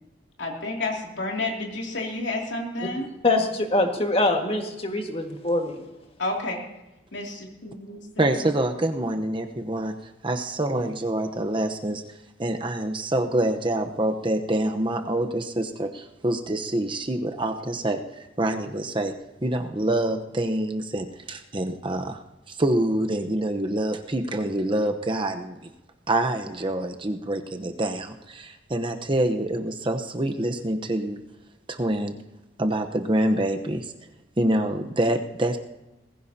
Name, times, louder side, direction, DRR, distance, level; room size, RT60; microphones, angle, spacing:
voice 1, 0.4-3.1 6.2-6.6 7.1-8.3, left 2 dB, 75° left, 0 dB, 2.7 m, -30 dB
voice 2, 3.2-5.8, left 2 dB, 30° left, 3 dB, 1.8 m, -24 dB
voice 3, 8.2-9.9 10.2-12.0 12.4-18.0 18.4-19.1 19.4-22.2 22.5-25.7 26.1-31.2 31.7-32.1 32.6-33.9 34.4-35.6, right 1 dB, 25° right, 6 dB, 0.9 m, -26 dB
20.0 x 16.0 x 2.8 m, 1.0 s
head